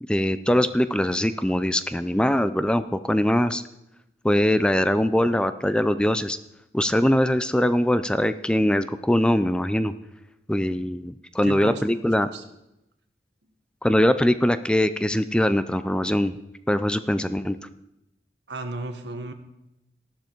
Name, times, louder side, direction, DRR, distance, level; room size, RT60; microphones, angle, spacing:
voice 1, 0.0-3.6 4.2-6.4 6.7-9.9 10.5-12.3 13.8-16.3 16.7-17.6, left 1 dB, 5° left, 12 dB, 0.4 m, -22 dB
voice 2, 11.4-11.8 12.3-12.4 18.5-19.3, right 2 dB, 85° right, 7 dB, 1.5 m, -33 dB
13.5 x 12.0 x 4.6 m, 0.88 s
head